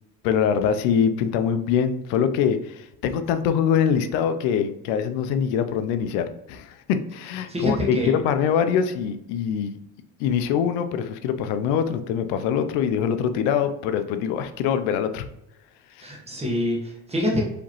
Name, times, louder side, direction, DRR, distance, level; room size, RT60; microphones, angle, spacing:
voice 1, 0.2-9.8 10.2-15.3, left 8 dB, 85° left, 9 dB, 0.6 m, -23 dB
voice 2, 7.5-8.1 16.0-17.4, left 1 dB, 15° right, -2 dB, 1.2 m, -25 dB
5.0 x 3.0 x 3.0 m, 0.83 s
cardioid pair, 150°, 43 cm